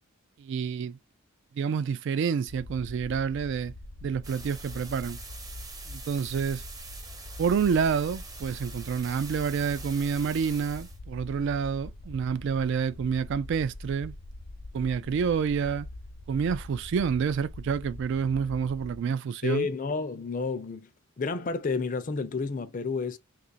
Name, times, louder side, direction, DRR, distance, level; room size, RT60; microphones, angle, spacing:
voice 1, 0.4-1.0 1.6-3.7 4.0-5.2 5.9-6.6 7.4-14.1 14.7-15.9 16.3-19.7, right 6 dB, 60° right, 0.3 m, -28 dB
sound 1, 2.5-19.0, left 1 dB, 80° left, 0.7 m, -43 dB
sound 2, 4.2-11.0, right 4 dB, 20° right, 0.6 m, -45 dB
voice 2, 19.4-20.9 21.2-23.2, left 4 dB, 40° left, 0.5 m, -30 dB
2.9 x 2.4 x 4.0 m
head